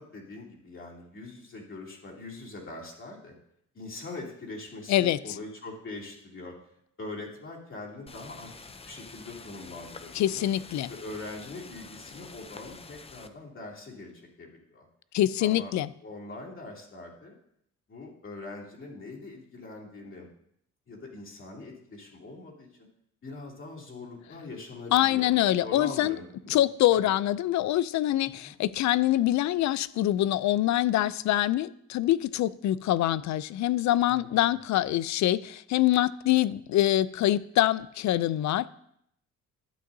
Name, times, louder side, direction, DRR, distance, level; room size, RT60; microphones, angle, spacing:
voice 1, 0.0-3.4 3.7-6.6 7.0-10.5 10.9-14.9 15.4-15.7 16.0-17.4 17.9-20.3 20.9-22.9 23.2-25.3 25.6-26.6 26.9-27.1 28.4-28.5 34.1-34.5, left 2 dB, 40° left, 2.9 m, -42 dB
sound 1, 8.1-13.3, left 4 dB, 20° left, 0.6 m, -47 dB
voice 2, 10.1-10.9 15.1-15.9 24.9-26.2 26.5-38.7, left 13 dB, 65° left, 0.5 m, -25 dB
12.5 x 8.5 x 2.7 m
cardioid pair, 90°, 30 cm